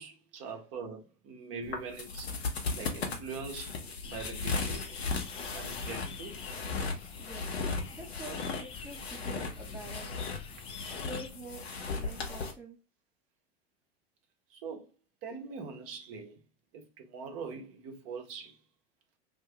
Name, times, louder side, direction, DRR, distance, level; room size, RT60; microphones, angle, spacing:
voice 1, 0.0-2.3 2.7-4.9 5.5-6.3 14.5-14.9 15.2-16.4 16.7-18.6, right 5 dB, 45° right, 1.0 m, -42 dB
sound 1, 1.6-12.5, left 4 dB, 80° left, 0.9 m, -36 dB
sound 2, 4.0-11.3, left 6 dB, 20° left, 0.3 m, -48 dB
voice 2, 7.2-7.5 7.9-10.1 10.9-11.6 11.9-12.8, right 2 dB, 5° right, 0.8 m, -46 dB
2.9 x 2.7 x 3.4 m
hypercardioid pair, 85°, 31 cm